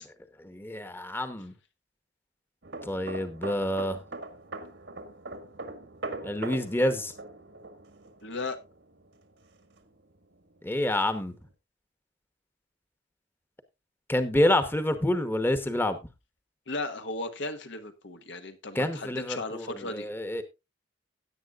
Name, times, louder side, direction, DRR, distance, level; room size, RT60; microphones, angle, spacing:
voice 1, 0.0-1.5 2.8-4.0 6.2-7.1 10.6-11.4 14.1-16.0 18.7-20.4, left 1 dB, 10° left, 0.9 m, -28 dB
sound 1, 2.6-10.1 10.4-10.7, right 2 dB, 75° right, 1.6 m, -41 dB
voice 2, 8.2-8.6 16.7-20.1, left 2 dB, 85° left, 1.3 m, -36 dB
16.5 x 8.7 x 2.4 m
head